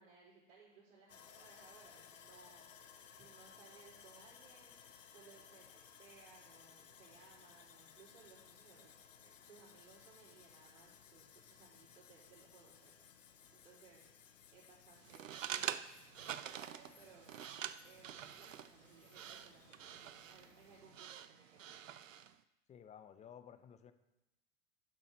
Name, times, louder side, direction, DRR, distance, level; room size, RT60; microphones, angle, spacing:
voice 1, 0.0-8.9 9.2-15.4 16.2-17.4 17.8-21.9, right 4 dB, 60° right, -12 dB, 3.8 m, -63 dB
Sawing, 1.1-21.0, left 8 dB, 80° left, 0.8 m, -61 dB
sound 1, 15.0-22.4, right 10 dB, 85° right, 0.5 m, -46 dB
voice 2, 22.7-23.9, left 8 dB, 20° left, 10 dB, 0.6 m, -55 dB
10.5 x 6.3 x 4.2 m, 0.92 s
figure-of-eight pair, 90°, 37 cm